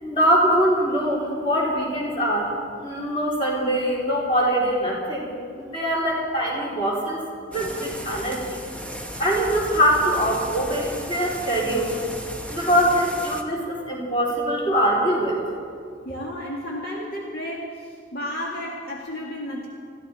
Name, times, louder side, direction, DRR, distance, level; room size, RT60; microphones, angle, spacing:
voice 1, 0.0-2.5 2.8-5.3 5.6-7.2 7.5-8.6 9.2-11.9 12.5-15.4, equal, 30° left, -4 dB, 4.2 m, -23 dB
sound 1, 7.5-13.4, equal, 5° left, 1.0 m, -35 dB
voice 2, 16.0-19.7, left 1 dB, 55° left, -3 dB, 1.9 m, -32 dB
22.0 x 15.0 x 4.3 m, 2.3 s
head